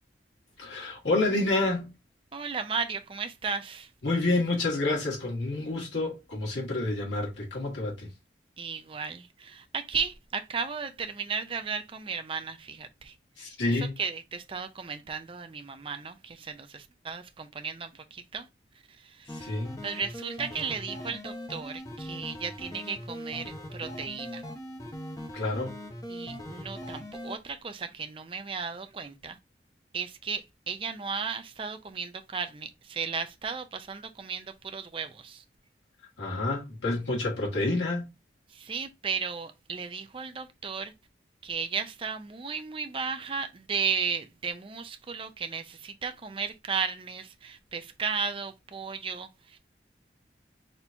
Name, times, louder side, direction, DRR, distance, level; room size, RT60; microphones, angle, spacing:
voice 1, 0.6-1.9 4.0-8.1 13.4-13.9 19.4-19.8 25.3-25.8 36.2-38.1, left 2 dB, 90° left, 1.8 m, -28 dB
voice 2, 2.3-3.9 8.6-18.5 19.0-19.5 19.8-24.4 26.1-29.4 29.9-35.4 38.5-40.9 41.4-49.6, right 5 dB, 30° right, 0.4 m, -35 dB
sound 1, 19.3-27.4, equal, 20° left, 0.7 m, -40 dB
4.2 x 2.9 x 3.3 m
head